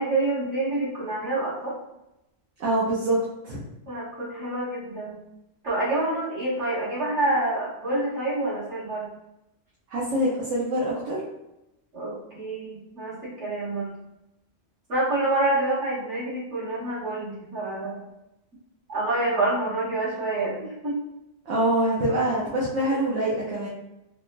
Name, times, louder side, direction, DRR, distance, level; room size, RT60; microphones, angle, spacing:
voice 1, 0.0-1.7 3.9-5.2 5.6-9.1 11.9-13.9 14.9-18.0 18.9-21.0, right 2 dB, 70° right, -9 dB, 1.8 m, -27 dB
voice 2, 2.6-3.2 3.4-3.6 9.9-11.2 21.5-23.7, right 1 dB, 85° right, -7 dB, 1.1 m, -24 dB
3.6 x 2.1 x 2.5 m, 0.89 s
omnidirectional pair, 1.3 m